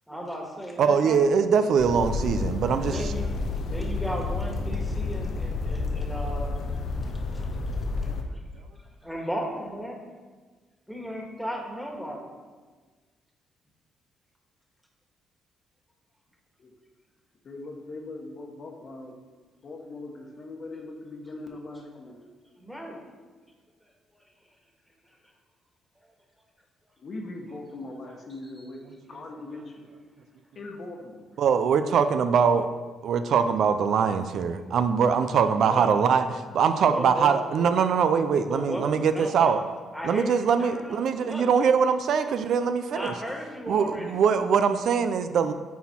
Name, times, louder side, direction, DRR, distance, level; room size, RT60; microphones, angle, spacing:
voice 1, 0.1-1.2 2.8-6.6 7.3-7.5 8.0-8.4 9.0-10.0 10.9-12.3 22.6-23.0 35.7-35.9 36.9-37.7 38.5-39.5 39.9-41.5 42.9-44.1, equal, ahead, 0 dB, 1.6 m, -35 dB
voice 2, 0.8-3.1 31.4-32.7 33.0-39.6 40.0-43.1 43.7-45.5, right 6 dB, 70° right, 9 dB, 0.4 m, -23 dB
sound 1, 1.8-8.2, left 3 dB, 70° left, 0.6 m, -30 dB
voice 3, 17.4-19.2 19.6-22.3 27.0-29.8 30.5-31.3, left 2 dB, 50° left, 2 dB, 1.2 m, -40 dB
9.3 x 4.2 x 4.3 m, 1.4 s
cardioid pair, 90°, 0 cm